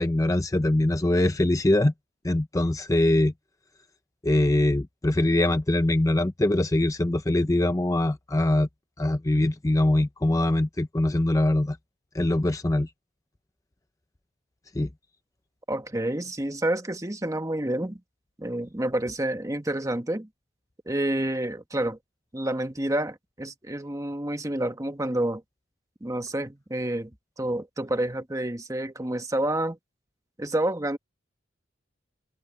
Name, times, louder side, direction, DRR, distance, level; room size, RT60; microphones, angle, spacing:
voice 1, 0.0-1.9 2.2-3.3 4.2-8.7 9.0-11.8 12.1-12.9 14.7-14.9, left 1 dB, 15° left, 0.5 m, -23 dB
voice 2, 15.7-18.0 18.4-20.3 20.9-22.0 22.3-25.4 26.0-27.1 27.4-29.8 30.4-31.0, right 1 dB, 15° right, 1.2 m, -29 dB
open air
head